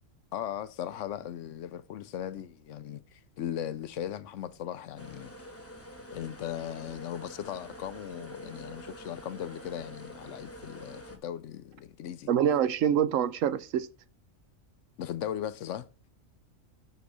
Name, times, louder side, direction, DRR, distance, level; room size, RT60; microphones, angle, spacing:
voice 1, 0.3-5.3 6.1-12.3 15.0-15.9, left 10 dB, 70° left, 0.9 m, -38 dB
sound 1, 5.0-11.2, equal, 10° left, 1.0 m, -46 dB
voice 2, 12.3-13.9, right 9 dB, 75° right, 1.0 m, -25 dB
9.2 x 3.9 x 4.8 m
omnidirectional pair, 1.4 m